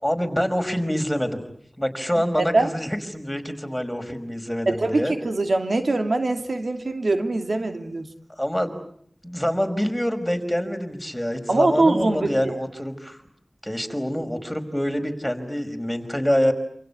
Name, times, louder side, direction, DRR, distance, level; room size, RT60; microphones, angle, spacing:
voice 1, 0.0-1.4 1.8-5.1 8.4-8.7 9.2-13.2 13.6-16.5, equal, 5° left, 6 dB, 5.2 m, -26 dB
voice 2, 2.1-2.7 4.7-8.1 11.5-12.5, right 2 dB, 80° right, 6 dB, 2.7 m, -23 dB
28.0 x 27.5 x 7.0 m, 0.66 s
wide cardioid pair, 55°, 0 cm